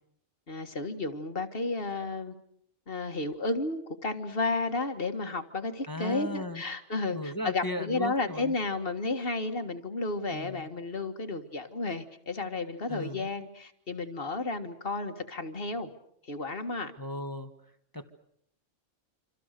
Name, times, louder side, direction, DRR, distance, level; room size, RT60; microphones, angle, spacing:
voice 1, 0.5-2.4 2.9-15.9 16.2-16.9, left 3 dB, 45° left, 7 dB, 2.0 m, -32 dB
voice 2, 5.9-6.6 7.1-8.5 10.3-10.7 12.9-13.3 17.0-17.5 17.9-18.1, left 1 dB, 15° left, 7 dB, 1.5 m, -36 dB
27.5 x 26.5 x 6.7 m, 0.71 s
omnidirectional pair, 1.4 m